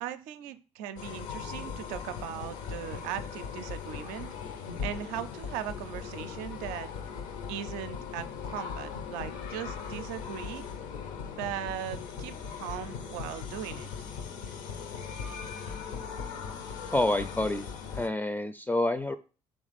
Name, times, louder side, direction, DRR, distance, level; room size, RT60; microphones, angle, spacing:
voice 1, 0.0-4.3 4.8-6.9 7.5-10.6 11.4-13.9, right 10 dB, 75° right, 12 dB, 0.4 m, -38 dB
sound 1, 1.0-18.1, left 6 dB, 70° left, 0.7 m, -39 dB
voice 2, 16.9-17.7 17.9-19.2, left 2 dB, 15° left, 11 dB, 0.4 m, -28 dB
3.7 x 2.9 x 4.1 m, 0.35 s
hypercardioid pair, 50°, 14 cm